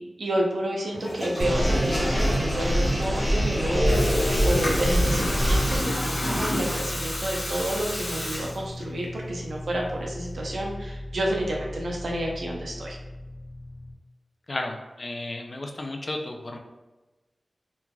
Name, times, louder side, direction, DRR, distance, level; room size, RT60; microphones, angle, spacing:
voice 1, 0.0-13.0, right 1 dB, 85° right, -1 dB, 0.5 m, -30 dB
Water tap faucet / Toilet flush, 0.9-9.0, left 1 dB, 70° left, 0.9 m, -31 dB
sound 1, 1.4-5.8, equal, 30° right, 0.9 m, -24 dB
sound 2, 3.7-13.9, left 1 dB, 15° left, 1.0 m, -33 dB
voice 2, 14.5-16.6, left 2 dB, 45° left, 3 dB, 0.3 m, -33 dB
3.0 x 2.3 x 2.2 m, 1.1 s
wide cardioid pair, 90°, 0 cm